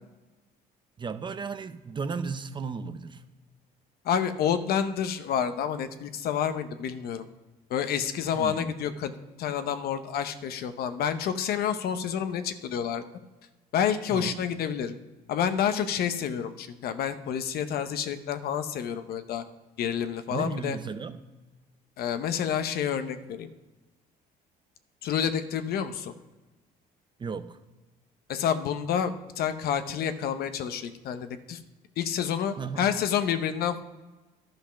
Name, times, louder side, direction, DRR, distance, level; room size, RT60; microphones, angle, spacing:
voice 1, 1.0-3.2 8.3-8.7 14.1-14.4 20.3-21.2 27.2-27.6 32.6-32.9, right 5 dB, 30° right, 10 dB, 0.7 m, -34 dB
voice 2, 4.0-7.2 7.7-9.1 9.4-13.0 13.7-14.9 15.3-19.4 19.8-20.8 22.0-23.5 25.0-26.1 28.3-31.6 32.0-33.8, left 8 dB, 65° left, 10 dB, 0.8 m, -29 dB
11.5 x 5.1 x 5.8 m, 1.2 s
cardioid pair, 110°, 17 cm